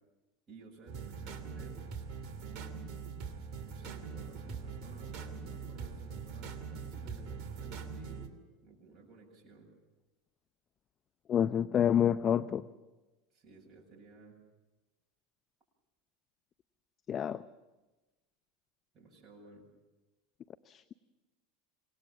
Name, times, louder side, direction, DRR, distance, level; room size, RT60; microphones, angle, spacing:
voice 1, 0.5-1.8 2.4-3.0 3.6-8.3 8.6-9.7 13.3-14.4 18.9-19.6, right 3 dB, 35° right, -4 dB, 7.9 m, -55 dB
sound 1, 0.9-8.3, right 5 dB, 50° right, 2.7 m, -42 dB
voice 2, 11.3-12.6 17.1-17.4 20.7-20.9, left 9 dB, 35° left, 13 dB, 0.8 m, -28 dB
26.5 x 19.5 x 7.2 m, 1.1 s
hypercardioid pair, 80°, 0 cm